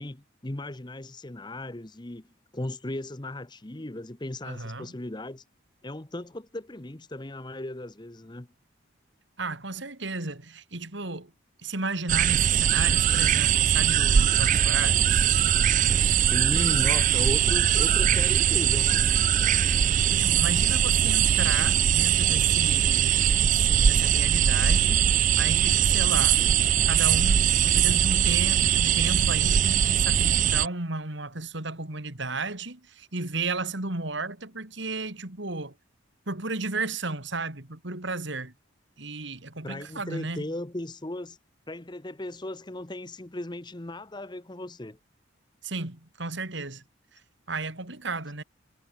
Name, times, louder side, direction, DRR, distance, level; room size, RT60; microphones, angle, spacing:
voice 1, 0.0-2.2 2.5-5.4 5.8-8.5 16.2-19.1 39.6-41.4 41.7-45.0, left 1 dB, 20° left, 0.9 m, -36 dB
voice 2, 4.4-4.9 9.4-11.3 11.6-15.2 19.4-26.4 26.8-35.7 36.3-38.5 39.0-40.4 45.6-46.8 47.5-48.4, right 3 dB, 60° right, 2.7 m, -33 dB
sound 1, 12.1-30.7, right 9 dB, 40° right, 0.4 m, -21 dB
head